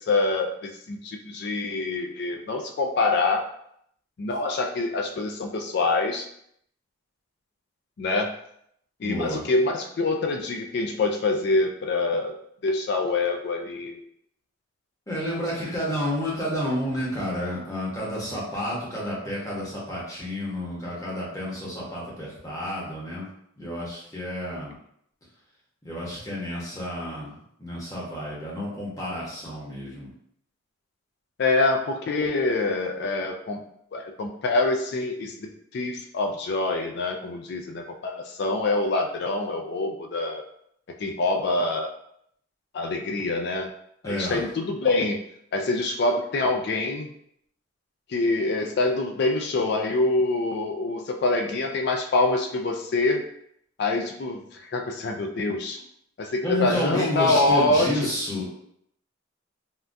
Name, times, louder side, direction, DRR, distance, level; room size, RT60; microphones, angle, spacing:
voice 1, 0.1-3.5 4.2-6.3 8.0-8.4 9.0-12.4 12.6-14.0 31.4-33.6 33.9-40.4 41.0-41.9 42.7-43.7 44.0-45.2 45.5-47.1 48.1-53.2 53.8-55.8 56.2-57.9, left 2 dB, 55° left, 3 dB, 0.3 m, -25 dB
voice 2, 9.0-9.4 15.1-23.3 23.6-24.7 25.8-30.1 44.0-44.4 56.4-58.5, left 1 dB, 15° left, -6 dB, 0.9 m, -30 dB
3.6 x 2.2 x 2.5 m, 0.71 s
head